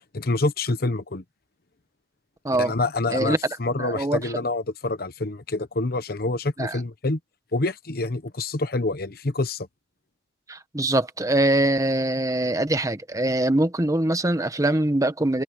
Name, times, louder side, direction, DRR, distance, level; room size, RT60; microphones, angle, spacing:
voice 1, 0.1-1.2 2.5-7.2 7.5-9.7, left 2 dB, 55° left, 1.1 m, -27 dB
voice 2, 3.8-4.2 6.6-6.8 10.5-15.4, right 1 dB, 20° right, 1.2 m, -23 dB
head